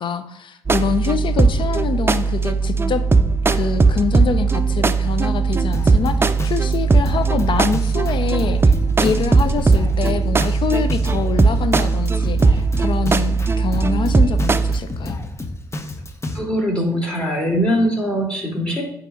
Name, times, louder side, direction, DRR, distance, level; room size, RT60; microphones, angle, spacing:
voice 1, 0.0-3.0 3.5-8.7 9.0-15.2, left 6 dB, 55° left, 11 dB, 0.6 m, -25 dB
sound 1, 0.7-14.8, right 4 dB, 25° right, 0.4 m, -18 dB
Drum kit, 5.7-16.4, left 2 dB, 25° left, 0.9 m, -31 dB
voice 2, 16.3-18.9, equal, 10° left, -1 dB, 2.5 m, -21 dB
8.8 x 3.0 x 3.8 m, 0.76 s
hypercardioid pair, 45°, 10 cm